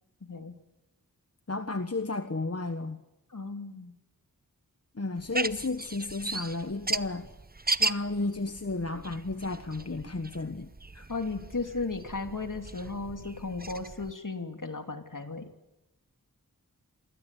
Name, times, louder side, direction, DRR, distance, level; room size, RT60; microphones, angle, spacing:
voice 1, 0.2-0.6 3.3-4.0 11.1-15.5, left 3 dB, 60° left, 7 dB, 2.8 m, -35 dB
voice 2, 1.5-3.0 4.9-7.3 7.8-11.1, left 3 dB, 45° left, 9 dB, 1.3 m, -33 dB
sound 1, 5.2-14.1, right 3 dB, 25° right, 0.9 m, -36 dB
28.0 x 24.5 x 8.3 m, 0.93 s
wide cardioid pair, 50°, 35 cm